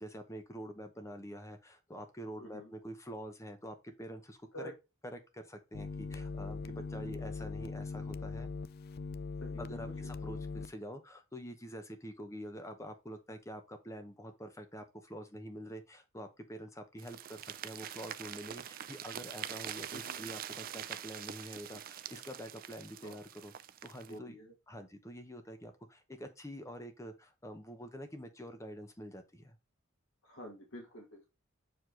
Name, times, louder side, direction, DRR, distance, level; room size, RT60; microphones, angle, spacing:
voice 1, 0.0-4.5 5.0-8.5 9.6-23.5 23.8-24.4 24.7-29.6, equal, 15° left, 0.9 m, -46 dB
voice 2, 2.4-2.7 4.5-4.7 9.4-9.9 19.9-20.4 23.0-23.2 24.1-24.5 30.2-31.3, equal, 85° left, 2.1 m, -48 dB
sound 1, 5.7-10.7, left 4 dB, 45° left, 0.4 m, -41 dB
sound 2, 17.0-24.2, right 10 dB, 45° right, 0.4 m, -44 dB
6.2 x 4.9 x 3.8 m
head